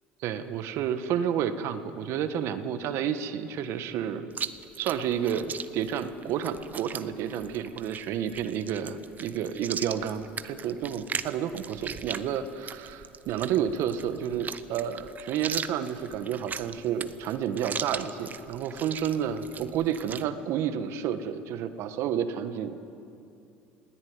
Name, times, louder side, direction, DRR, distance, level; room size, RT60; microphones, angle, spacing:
voice 1, 0.2-4.3 4.8-22.9, right 9 dB, 65° right, 10 dB, 1.4 m, -30 dB
Chewing mastication, 4.3-20.2, right 6 dB, 35° right, 1.0 m, -39 dB
20.0 x 17.5 x 9.7 m, 2.6 s
hypercardioid pair, 80°, 5 cm